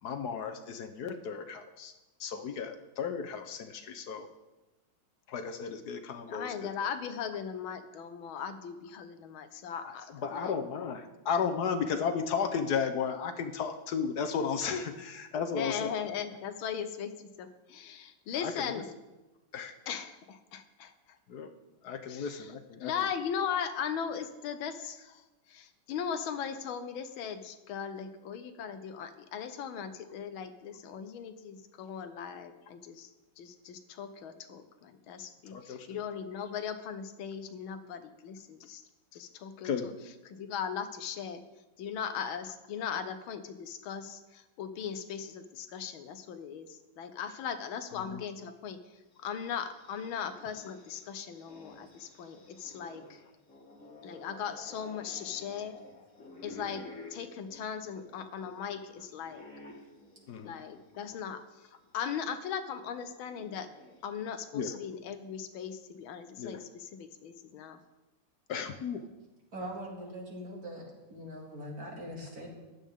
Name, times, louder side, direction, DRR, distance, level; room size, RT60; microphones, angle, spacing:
voice 1, 0.0-1.9 2.2-4.3 5.3-6.9 9.8-15.9 18.4-18.8 19.5-19.8 21.3-21.5 21.8-23.1 35.5-36.0 39.1-39.2 39.6-39.9 47.9-48.2 60.3-60.5 64.5-64.8 66.4-66.6 68.5-69.1, left 6 dB, 60° left, 8 dB, 1.2 m, -34 dB
voice 2, 6.3-10.0 10.3-10.6 15.6-18.8 19.9-21.2 22.1-22.4 22.8-38.8 39.1-39.7 40.3-41.4 41.8-53.2 54.0-55.8 56.4-59.5 60.4-63.7 64.0-66.6 66.9-67.8, left 7 dB, 80° left, 9 dB, 1.6 m, -38 dB
sound 1, 49.1-61.4 61.8-61.9 63.0-64.2, left 2 dB, 40° left, 1.8 m, -52 dB
voice 3, 69.5-70.8 71.1-72.5, equal, 45° right, -2 dB, 2.9 m, -41 dB
14.5 x 11.0 x 3.6 m, 1.1 s
omnidirectional pair, 2.2 m